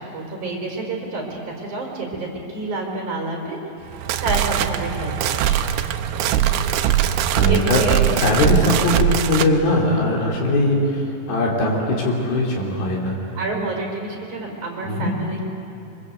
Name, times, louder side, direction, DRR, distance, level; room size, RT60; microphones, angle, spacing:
voice 1, 0.0-3.6 4.2-5.6 7.4-8.1 13.3-15.4, right 2 dB, 55° right, 0 dB, 6.3 m, -28 dB
sound 1, 3.9-9.5, right 11 dB, 85° right, 2.7 m, -21 dB
voice 2, 7.3-7.8 8.2-13.2 13.6-13.7 14.8-15.1, left 2 dB, 80° left, -3 dB, 5.5 m, -20 dB
26.0 x 25.0 x 8.2 m, 3.0 s
omnidirectional pair, 4.2 m